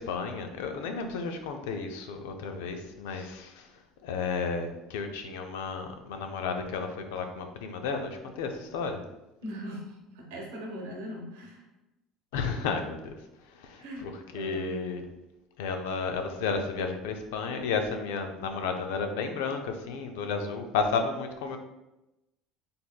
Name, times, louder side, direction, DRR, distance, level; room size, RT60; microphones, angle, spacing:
voice 1, 0.0-3.7 4.0-9.0 12.3-13.2 13.5-15.0 15.6-21.6, left 5 dB, 80° left, 6 dB, 0.5 m, -32 dB
voice 2, 9.4-11.7 13.8-14.1 14.3-14.8, equal, 80° right, 0 dB, 1.0 m, -40 dB
4.0 x 3.5 x 2.2 m, 0.94 s
hypercardioid pair, 75°, 0 cm